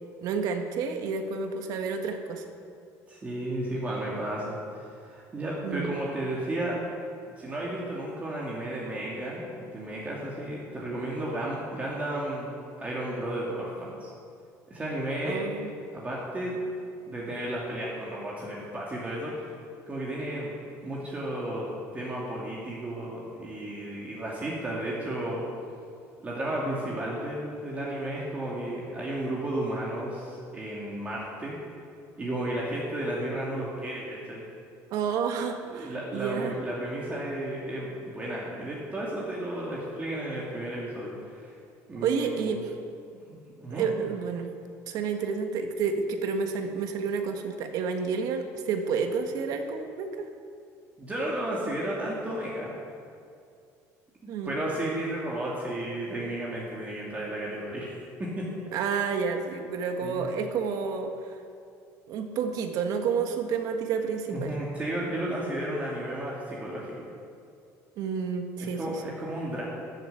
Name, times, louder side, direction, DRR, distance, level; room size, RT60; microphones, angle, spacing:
voice 1, 0.2-2.4 5.6-6.0 15.2-15.7 34.9-36.5 41.9-42.6 43.7-44.5 44.9-50.3 54.3-54.5 58.7-61.3 62.1-64.5 68.0-69.0, right 5 dB, 65° right, 5 dB, 1.5 m, -30 dB
voice 2, 3.1-6.8 7.4-12.5 12.8-14.1 14.7-15.4 15.9-16.7 17.1-19.4 19.9-20.5 20.8-21.7 21.9-25.4 26.2-31.5 32.2-34.4 35.6-41.5 41.9-42.5 43.1-43.9 51.0-52.7 54.2-57.9 58.2-58.5 60.0-60.2 64.3-67.1 68.8-69.6, right 1 dB, 20° right, -5 dB, 2.4 m, -33 dB
13.5 x 7.8 x 8.2 m, 2.4 s
cardioid pair, 130°, 7 cm